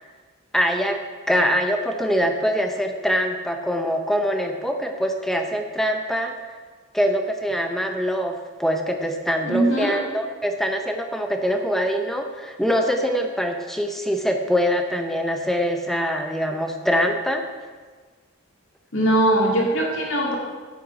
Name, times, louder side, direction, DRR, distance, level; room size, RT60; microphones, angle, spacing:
voice 1, 0.5-1.0 1.3-6.3 6.9-17.4, equal, ahead, 4 dB, 0.6 m, -23 dB
voice 2, 9.4-10.0 18.9-20.4, right 1 dB, 70° left, -2 dB, 2.2 m, -20 dB
9.1 x 8.2 x 4.9 m, 1.4 s
head